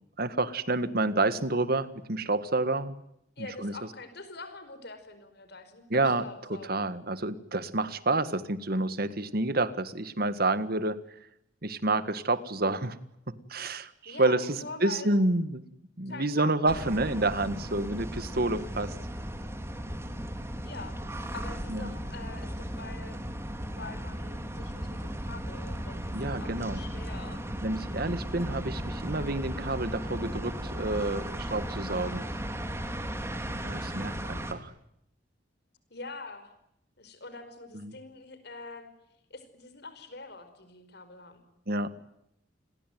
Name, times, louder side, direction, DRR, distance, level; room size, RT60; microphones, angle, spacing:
voice 1, 0.2-3.0 3.4-3.7 5.9-6.2 6.7-11.0 11.6-13.0 13.3-15.6 16.0-18.9 21.7-21.9 26.1-26.8 27.6-32.3 33.6-34.7 37.9-38.0 41.7-41.9, right 2 dB, 50° right, 13 dB, 1.8 m, -29 dB
voice 2, 3.4-6.8 14.0-15.1 16.0-16.9 20.6-21.0 21.3-23.2 23.6-27.4 35.9-36.5 37.0-38.9 39.3-41.4, left 3 dB, 60° left, 11 dB, 5.1 m, -44 dB
sound 1, 16.7-34.5, equal, 15° right, 3.1 m, -36 dB
29.0 x 22.0 x 9.3 m, 0.80 s
head